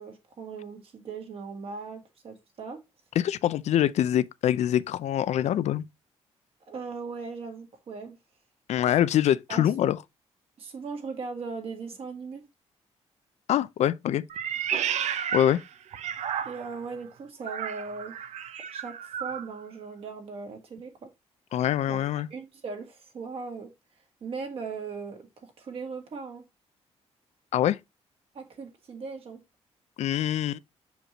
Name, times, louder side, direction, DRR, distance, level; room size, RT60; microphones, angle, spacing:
voice 1, 0.0-2.8 6.7-8.2 9.5-9.6 10.6-12.5 16.4-18.1 18.7-21.1 21.9-22.0 22.3-23.7 24.2-26.4 28.3-29.4, right 4 dB, 55° right, 1.9 m, -38 dB
voice 2, 3.2-5.8 8.7-10.0 13.5-14.2 15.3-15.6 21.5-22.3 27.5-27.8 30.0-30.6, left 11 dB, 75° left, 0.5 m, -24 dB
Meow, 14.3-16.9 17.4-19.5, right 8 dB, 80° right, 0.6 m, -32 dB
6.5 x 5.0 x 2.9 m
cardioid pair, 125°, 12 cm